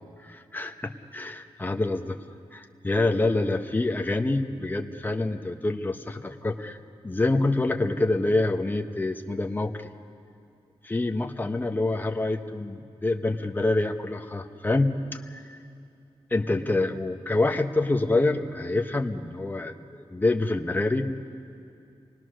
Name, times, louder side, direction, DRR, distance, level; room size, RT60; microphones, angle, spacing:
voice 1, 0.2-2.2 2.5-6.8 7.0-9.9 10.8-15.6 16.3-21.1, left 2 dB, 20° left, 4 dB, 1.0 m, -26 dB
28.0 x 19.5 x 6.4 m, 2.4 s
wide cardioid pair, 120°, 10 cm